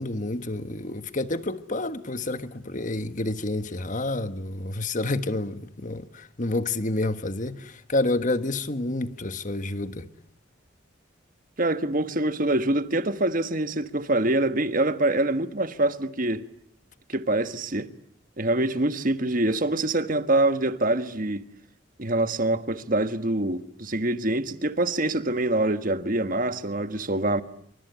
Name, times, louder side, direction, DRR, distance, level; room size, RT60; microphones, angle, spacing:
voice 1, 0.0-10.1, left 2 dB, 40° left, 1.4 m, -29 dB
voice 2, 11.6-16.4 17.1-17.9 18.4-21.4 22.0-27.4, right 2 dB, 45° right, 1.4 m, -25 dB
28.0 x 25.0 x 8.2 m
head